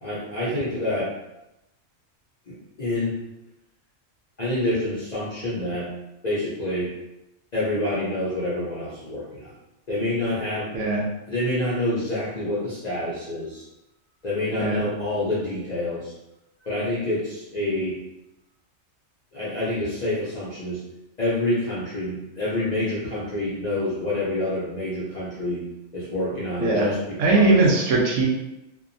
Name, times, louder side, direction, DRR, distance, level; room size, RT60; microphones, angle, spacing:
voice 1, 0.0-1.1 2.5-3.2 4.4-5.9 6.2-6.9 7.5-9.6 9.9-10.7 11.3-13.7 14.2-16.1 16.6-18.0 19.3-20.8 21.2-25.6 25.9-27.0 27.3-27.7, left 1 dB, 50° left, -9 dB, 0.5 m, -27 dB
voice 2, 10.7-11.1 14.6-14.8 26.6-26.9 27.2-28.3, right 2 dB, 75° right, -1 dB, 0.9 m, -20 dB
2.6 x 2.2 x 2.5 m, 0.92 s
omnidirectional pair, 1.4 m